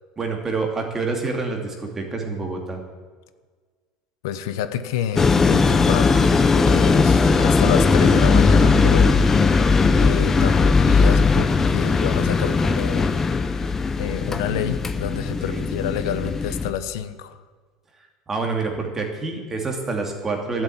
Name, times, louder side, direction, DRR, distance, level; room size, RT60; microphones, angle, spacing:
voice 1, 0.2-2.8 15.5-15.6 18.3-20.6, right 3 dB, 20° right, 2 dB, 2.5 m, -27 dB
voice 2, 4.2-6.3 6.6-9.4 10.0-13.1 14.0-17.4, left 10 dB, 90° left, 11 dB, 1.0 m, -28 dB
sound 1, 5.2-16.7, left 4 dB, 15° left, 0.8 m, -18 dB
12.5 x 7.6 x 9.9 m, 1.5 s
cardioid pair, 150°, 2 cm